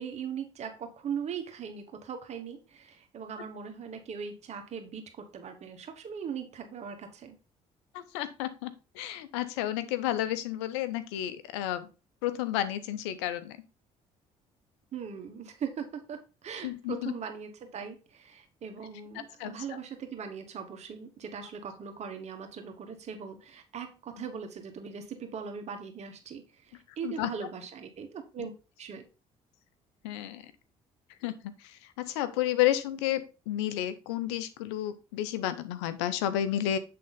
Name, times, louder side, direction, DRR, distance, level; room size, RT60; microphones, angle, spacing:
voice 1, 0.0-7.4 14.9-28.5 28.8-29.1, right 7 dB, 55° right, 5 dB, 1.5 m, -40 dB
voice 2, 7.9-11.9 12.2-13.6 16.6-17.1 19.4-19.8 27.0-27.3 30.0-30.4 31.2-36.8, left 12 dB, 90° left, 13 dB, 0.6 m, -31 dB
7.6 x 3.7 x 4.1 m, 0.31 s
supercardioid pair, 65°, 14 cm